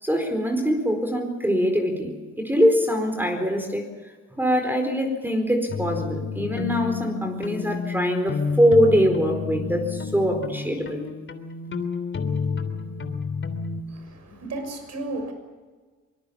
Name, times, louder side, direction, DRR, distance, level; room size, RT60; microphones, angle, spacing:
voice 1, 0.0-3.8 4.3-11.0, equal, 5° right, 4 dB, 4.5 m, -23 dB
sound 1, 5.7-13.8, left 5 dB, 40° left, 3.2 m, -30 dB
voice 2, 13.9-15.3, right 2 dB, 60° right, 7 dB, 6.7 m, -34 dB
24.0 x 21.5 x 7.3 m, 1.4 s
cardioid pair, 90°, 30 cm